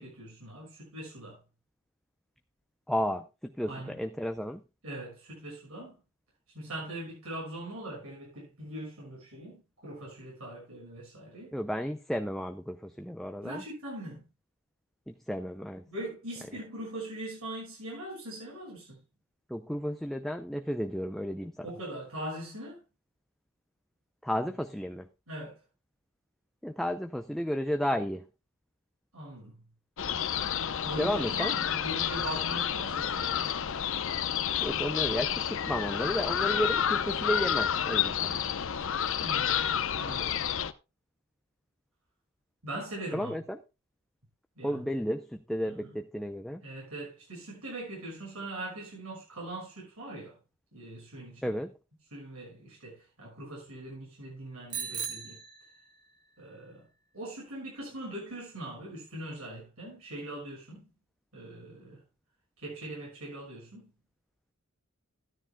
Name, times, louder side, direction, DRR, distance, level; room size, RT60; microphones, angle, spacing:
voice 1, 0.0-1.4 3.7-3.9 4.8-6.0 6.5-11.5 13.4-14.2 15.9-19.0 21.6-22.8 25.3-25.5 29.1-29.6 30.8-33.4 39.2-39.6 39.9-40.4 42.6-43.3 44.6-44.8 46.6-50.3 50.7-51.5 52.1-55.4 56.4-56.8 57.1-60.9 61.3-62.0 62.6-63.8, right 1 dB, 85° right, 6.2 m, -41 dB
voice 2, 2.9-4.6 11.5-13.6 15.1-15.8 16.5-16.6 19.5-21.7 24.2-25.1 26.6-28.3 31.0-31.5 34.6-38.4 43.1-43.6 44.6-46.6 51.4-51.7, equal, ahead, 0.5 m, -33 dB
sound 1, 30.0-40.7, left 9 dB, 65° left, 0.7 m, -30 dB
Bicycle bell, 54.7-56.3, right 7 dB, 55° right, 1.7 m, -38 dB
13.5 x 12.5 x 2.2 m
head